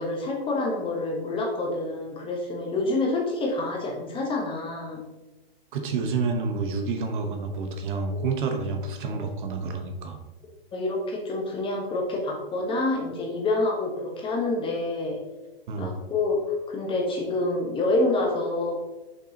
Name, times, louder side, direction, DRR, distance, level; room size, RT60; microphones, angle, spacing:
voice 1, 0.0-5.0 8.1-8.2 10.7-15.2 15.8-16.4 16.7-18.7, left 2 dB, 15° left, 0 dB, 1.1 m, -27 dB
voice 2, 5.7-10.2 15.7-15.9, right 4 dB, 55° right, 5 dB, 1.0 m, -29 dB
6.6 x 5.5 x 2.8 m, 1.1 s
hypercardioid pair, 130°, 31 cm